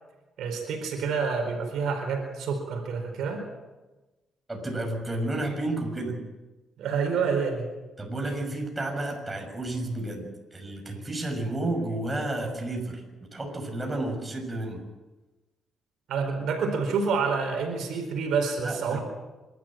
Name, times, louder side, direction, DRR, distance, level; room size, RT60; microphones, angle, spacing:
voice 1, 0.4-3.4 6.8-7.7 16.1-19.0, right 5 dB, 80° right, 3 dB, 4.5 m, -28 dB
voice 2, 4.5-6.2 8.0-14.8 18.6-19.0, right 2 dB, 20° right, 2 dB, 6.5 m, -31 dB
27.0 x 13.0 x 7.6 m, 1.1 s
cardioid pair, 90°, 0 cm